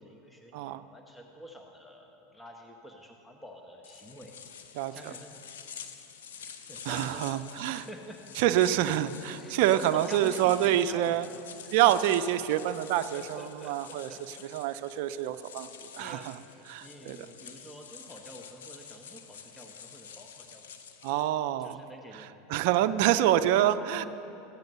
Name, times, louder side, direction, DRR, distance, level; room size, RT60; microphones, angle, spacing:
voice 1, 0.0-4.3 4.9-5.4 6.4-7.3 7.7-8.9 9.2-11.8 12.0-12.1 12.7-12.8 13.1-14.8 16.0-16.3 16.8-20.7 21.6-22.3 23.8-24.1, equal, 10° left, 2 dB, 1.0 m, -47 dB
voice 2, 0.5-0.8 4.7-5.1 6.9-7.9 8.4-11.3 11.7-14.1 14.5-15.7 15.9-16.3 16.7-17.2 21.0-21.8 22.1-24.0, right 12 dB, 65° right, 11 dB, 0.4 m, -27 dB
sound 1, 3.8-21.3, left 7 dB, 80° left, 0.7 m, -48 dB
14.5 x 9.1 x 5.4 m, 3.0 s
hypercardioid pair, 95°, 0 cm